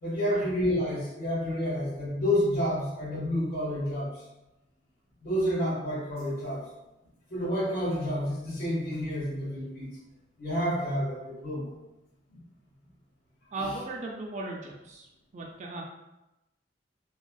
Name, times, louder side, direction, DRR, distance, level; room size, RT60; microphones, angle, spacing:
voice 1, 0.0-4.1 5.2-6.7 7.3-9.9 10.4-11.7 12.3-12.4 13.6-13.7, equal, 55° left, -10 dB, 1.4 m, -29 dB
voice 2, 13.5-15.1 15.3-15.8, right 2 dB, 40° right, -1 dB, 0.4 m, -36 dB
3.3 x 2.3 x 2.3 m, 0.95 s
head